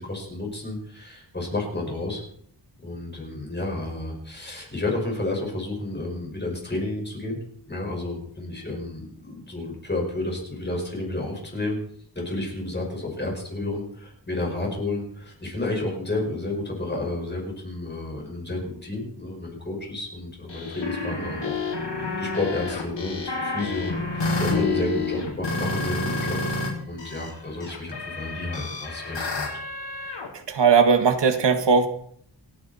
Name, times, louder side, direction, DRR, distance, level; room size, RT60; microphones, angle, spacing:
voice 1, 0.0-2.2 2.8-7.4 7.7-11.8 12.1-26.4 26.8-29.5, left 2 dB, 25° left, 0 dB, 5.2 m, -31 dB
sound 1, 20.5-26.7 27.0-30.3, left 3 dB, 85° left, 5.3 m, -29 dB
voice 2, 30.3-31.9, right 5 dB, 75° right, 7 dB, 1.6 m, -19 dB
28.5 x 9.6 x 4.2 m, 0.64 s
wide cardioid pair, 145°, 42 cm